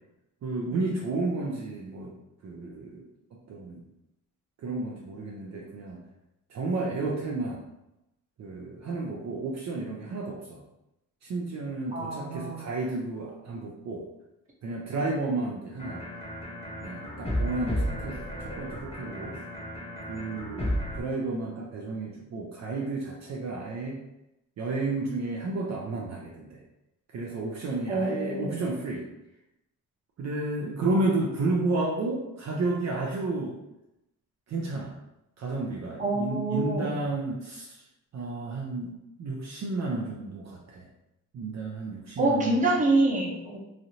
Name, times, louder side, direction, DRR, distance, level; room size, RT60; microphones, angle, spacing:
voice 1, 0.4-2.1 2.4-3.0 3.5-3.8 4.6-6.0 6.5-7.6 8.4-10.6 11.2-14.1 14.6-16.0 16.8-19.4 20.1-24.0 24.6-26.6 27.1-29.0 30.2-33.6 34.5-34.9 35.4-37.8 38.1-40.9 41.3-42.6, right 2 dB, 55° right, -2 dB, 0.5 m, -32 dB
voice 2, 11.9-12.7 27.9-28.7 36.0-36.9 42.2-43.6, right 2 dB, 25° right, -3 dB, 0.8 m, -26 dB
sound 1, 15.8-21.0, equal, 20° left, 0.8 m, -33 dB
3.1 x 2.6 x 2.7 m, 0.89 s
cardioid pair, 120°, 34 cm